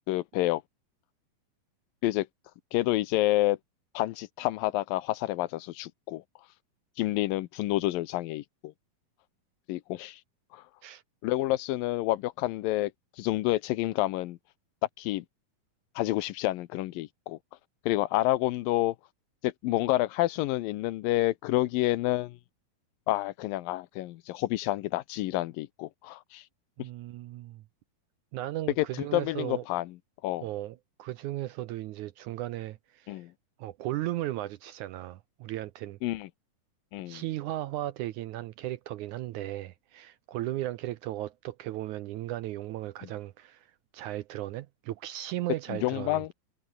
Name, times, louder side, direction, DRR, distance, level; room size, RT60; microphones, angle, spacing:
voice 1, 0.1-0.6 2.0-2.3 2.7-3.6 3.9-6.2 7.0-8.7 9.7-10.2 10.5-10.6 11.2-12.9 13.2-14.4 15.0-15.3 16.0-17.4 17.9-19.0 19.4-22.4 23.1-26.4 28.8-30.0 30.2-30.5 33.1-33.3 36.0-36.3 36.9-37.2 45.7-46.3, left 17 dB, 80° left, 2.5 m, -29 dB
voice 2, 26.8-27.6 28.3-29.6 30.4-33.2 33.6-36.0 37.1-43.7 43.9-46.3, right 15 dB, 75° right, 1.9 m, -36 dB
omnidirectional pair, 4.1 m